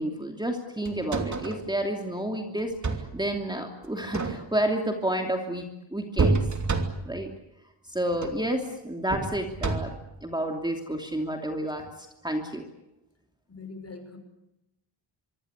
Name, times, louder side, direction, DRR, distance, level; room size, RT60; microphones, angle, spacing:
voice 1, 0.0-6.4 7.0-7.3 7.9-9.9 10.2-11.8 12.2-12.6, right 1 dB, 10° right, 3 dB, 2.9 m, -30 dB
sound 1, 0.9-1.7 2.6-3.2 4.0-4.7 6.2-7.2 8.1-8.5 9.1-10.1 11.8-11.9, right 3 dB, 40° right, 3.0 m, -28 dB
voice 2, 13.5-14.2, left 4 dB, 35° left, 7 dB, 5.9 m, -42 dB
25.0 x 24.5 x 8.3 m, 0.89 s
wide cardioid pair, 160°, 45 cm